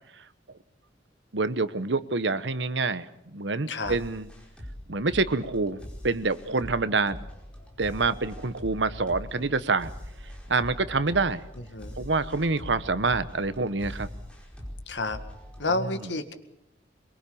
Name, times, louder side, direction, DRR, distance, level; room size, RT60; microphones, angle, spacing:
voice 1, 1.3-4.3 4.9-7.2 7.8-9.9 10.5-11.4 12.0-14.1 16.0-16.1, right 3 dB, 80° right, 14 dB, 1.1 m, -27 dB
sound 1, 3.8-15.7, equal, 5° left, 4.9 m, -42 dB
voice 2, 14.9-15.2 15.6-16.3, left 2 dB, 75° left, 9 dB, 2.0 m, -30 dB
23.0 x 22.5 x 7.1 m, 0.80 s
head